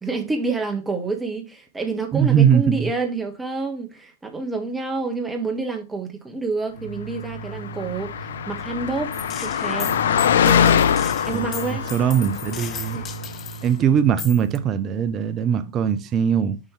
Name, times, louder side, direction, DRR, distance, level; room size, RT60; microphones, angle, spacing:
voice 1, 0.0-10.0 10.3-10.8 11.3-11.9 12.9-13.1, right 3 dB, 10° right, 1.6 m, -28 dB
voice 2, 2.1-2.9 11.3-13.0 13.6-16.6, right 8 dB, 30° right, 0.6 m, -20 dB
Keyboard (musical), 6.7-15.1, right 4 dB, 90° left, 2.0 m, -38 dB
Car passing by, 7.4-13.3, left 8 dB, 60° left, 0.4 m, -23 dB
Gunshot gunfire, 9.1-13.7 14.2-14.6, left 8 dB, 30° left, 0.9 m, -36 dB
7.3 x 5.3 x 3.3 m
figure-of-eight pair, 90°, 0 cm